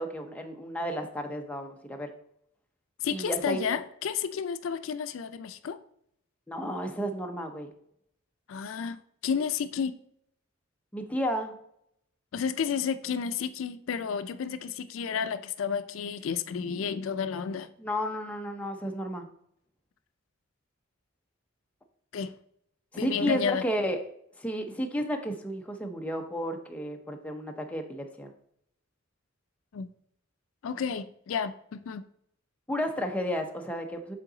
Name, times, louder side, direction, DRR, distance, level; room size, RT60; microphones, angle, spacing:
voice 1, 0.0-2.1 3.1-3.6 6.5-7.7 10.9-11.5 17.8-19.3 23.0-24.0 24.4-28.3 32.7-34.2, equal, 5° left, 0.6 m, -32 dB
voice 2, 3.0-5.8 8.5-10.0 12.3-17.7 22.1-22.3 23.0-23.6 29.7-29.9 30.6-32.0, left 6 dB, 80° left, 0.4 m, -31 dB
7.5 x 3.8 x 3.8 m
head